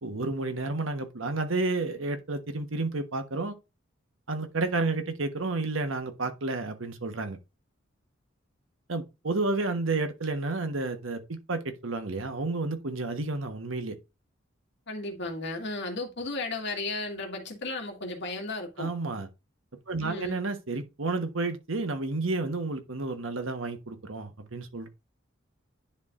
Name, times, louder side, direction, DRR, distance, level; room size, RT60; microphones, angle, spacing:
voice 1, 0.0-3.5 4.3-7.4 8.9-13.9 18.8-19.3 19.9-24.9, right 3 dB, 85° right, 1.2 m, -31 dB
voice 2, 14.9-18.9 20.0-20.5, left 2 dB, 60° left, 2.0 m, -34 dB
10.5 x 4.6 x 2.6 m
head